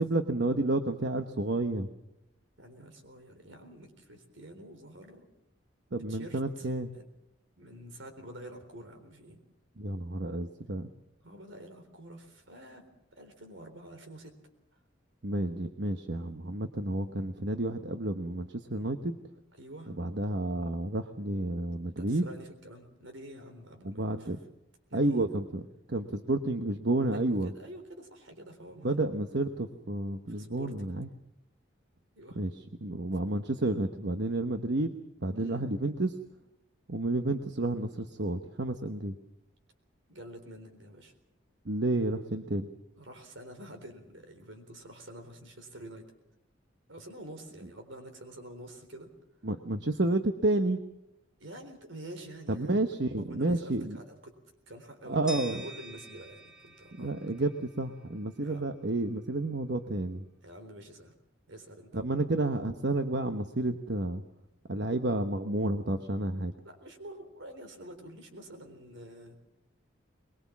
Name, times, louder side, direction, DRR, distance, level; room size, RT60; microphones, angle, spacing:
voice 1, 0.0-1.9 5.9-7.0 9.8-10.9 15.2-19.2 19.9-22.3 23.8-24.4 24.9-25.6 25.9-27.5 28.8-31.1 32.3-34.9 35.2-36.1 36.9-39.1 41.6-42.7 49.4-50.8 52.5-54.0 55.1-55.6 57.0-60.2 61.9-64.2 64.7-66.5, right 2 dB, 60° right, 8 dB, 1.1 m, -30 dB
voice 2, 2.6-5.3 5.9-6.7 6.9-7.0 7.6-9.4 11.2-12.9 13.1-14.4 19.6-19.9 22.0-24.3 24.9-25.4 27.1-29.0 30.3-30.8 32.2-32.4 35.4-35.6 40.1-41.1 42.9-46.1 46.9-49.1 51.4-52.8 53.3-54.4 54.7-57.1 58.4-58.6 60.4-61.2 61.5-62.1 66.6-69.4, right 1 dB, 75° right, 6 dB, 3.8 m, -48 dB
sound 1, 55.3-58.2, right 2 dB, 5° right, 1.1 m, -46 dB
23.0 x 22.0 x 7.3 m, 0.86 s
head